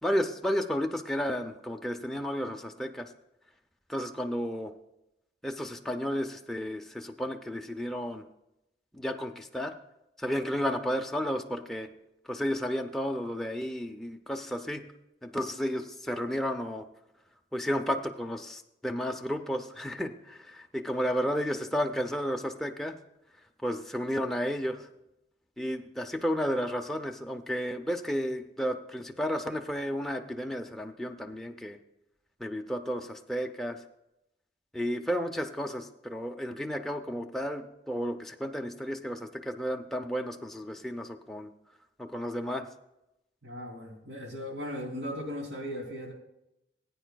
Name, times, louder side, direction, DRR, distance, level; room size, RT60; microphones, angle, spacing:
voice 1, 0.0-3.1 3.9-4.7 5.4-8.2 8.9-9.7 10.2-11.9 12.3-14.9 15.2-16.9 17.5-23.0 23.6-24.9 25.6-31.8 32.4-33.8 34.7-41.5 42.0-42.7, equal, ahead, 3 dB, 0.5 m, -32 dB
voice 2, 43.4-46.1, equal, 70° right, -1 dB, 3.0 m, -37 dB
20.0 x 9.0 x 2.3 m, 0.88 s
head